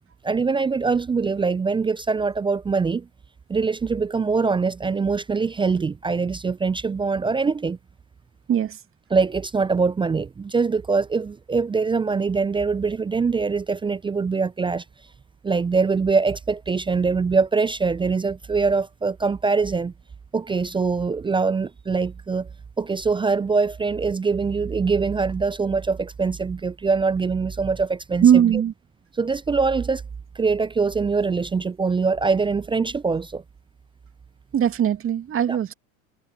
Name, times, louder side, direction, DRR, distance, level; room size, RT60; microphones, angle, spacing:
voice 1, 0.2-3.1 3.5-7.8 9.1-14.8 15.4-19.9 20.3-22.5 22.8-28.2 29.2-30.0 30.4-33.4 35.5-35.6, right 4 dB, 10° right, 0.6 m, -23 dB
voice 2, 8.5-8.8 28.2-28.7 34.5-35.7, right 9 dB, 30° right, 2.4 m, -19 dB
figure-of-eight pair, 85°, 43 cm